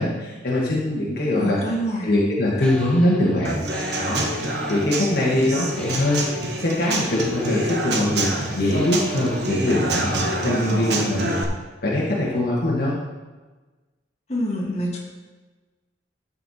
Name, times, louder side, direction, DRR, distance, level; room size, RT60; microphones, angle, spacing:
voice 1, 0.0-1.6 2.0-3.6 3.9-11.4 11.8-12.9, left 1 dB, 55° left, -5 dB, 1.7 m, -22 dB
voice 2, 1.4-2.2 14.3-15.0, equal, 35° left, -3 dB, 2.0 m, -26 dB
sound 1, 2.6-11.3, left 1 dB, 5° left, 1.0 m, -37 dB
Human voice / Acoustic guitar / Drum, 3.4-11.4, right 2 dB, 60° right, 1.2 m, -27 dB
13.0 x 5.7 x 4.3 m, 1.2 s
head